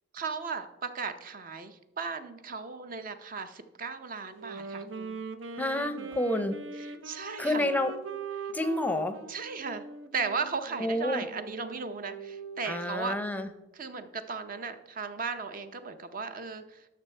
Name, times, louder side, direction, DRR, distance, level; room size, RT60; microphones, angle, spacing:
voice 1, 0.1-5.2 6.0-6.1 6.8-7.7 9.3-9.8 10.1-13.2 13.7-16.9, right 5 dB, 50° right, 9 dB, 0.7 m, -36 dB
Wind instrument woodwind instrument, 4.3-13.0, right 4 dB, 85° right, 0.7 m, -42 dB
voice 2, 5.6-6.5 7.4-7.9 8.5-9.2 10.8-11.2 12.6-13.5, left 1 dB, 10° left, 10 dB, 0.6 m, -29 dB
12.0 x 6.1 x 4.4 m, 0.96 s
head